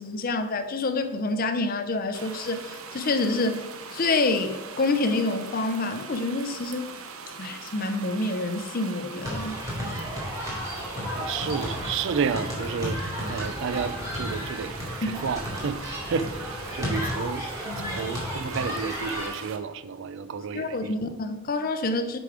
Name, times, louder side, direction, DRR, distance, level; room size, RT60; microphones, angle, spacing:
voice 1, 0.0-3.6 3.9-6.9 7.4-9.6 15.0-15.2 17.7-18.1 20.5-22.2, left 2 dB, 40° left, 0.5 m, -27 dB
sound 1, 2.1-19.6, right 5 dB, 70° right, 0.7 m, -41 dB
sound 2, 9.2-19.3, equal, 15° right, 2.3 m, -33 dB
voice 2, 11.1-17.5 17.9-20.9, right 6 dB, 55° right, 0.4 m, -31 dB
6.7 x 5.1 x 4.8 m
head